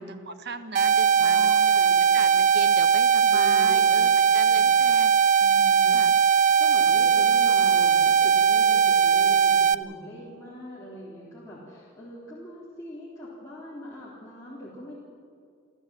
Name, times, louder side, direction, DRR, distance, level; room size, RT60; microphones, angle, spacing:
voice 1, 0.3-1.9 2.1-5.1 5.9-6.2 10.3-10.4, right 3 dB, 55° right, 9 dB, 1.4 m, -38 dB
sound 1, 0.7-9.7, right 7 dB, 40° right, 0.5 m, -20 dB
voice 2, 1.2-2.1 3.3-4.1 4.6-4.7 5.4-6.0 6.6-14.9, equal, 15° left, -8 dB, 3.8 m, -41 dB
28.0 x 14.5 x 7.8 m, 2.3 s
head